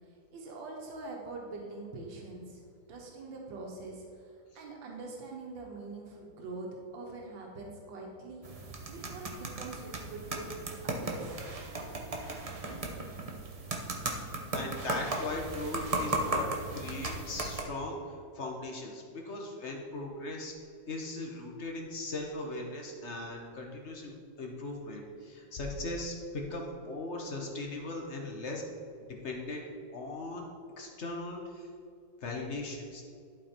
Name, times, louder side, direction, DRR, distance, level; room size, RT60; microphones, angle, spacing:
voice 1, 0.1-2.6 2.9-6.7 6.9-10.4 10.8-11.4, right 3 dB, 85° right, -1 dB, 1.9 m, -44 dB
sound 1, 8.4-17.6, right 2 dB, 40° right, 0.5 m, -36 dB
voice 2, 14.5-18.0 18.3-20.5 20.9-28.6 29.1-29.6 29.9-30.5 30.8-31.7 32.2-33.0, left 2 dB, 45° left, 1 dB, 1.1 m, -38 dB
11.5 x 4.7 x 4.4 m, 2.4 s
omnidirectional pair, 2.0 m